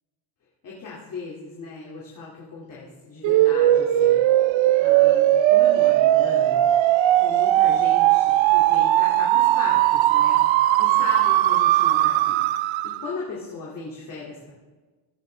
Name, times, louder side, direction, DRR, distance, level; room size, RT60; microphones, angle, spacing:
voice 1, 0.6-4.2 4.8-6.6 7.2-10.4 10.8-12.4 12.8-14.5, left 4 dB, 45° left, -5 dB, 2.4 m, -37 dB
sound 1, 3.2-13.1, right 14 dB, 75° right, 0.7 m, -18 dB
16.5 x 13.5 x 3.3 m, 1.3 s
cardioid pair, 170°, 47 cm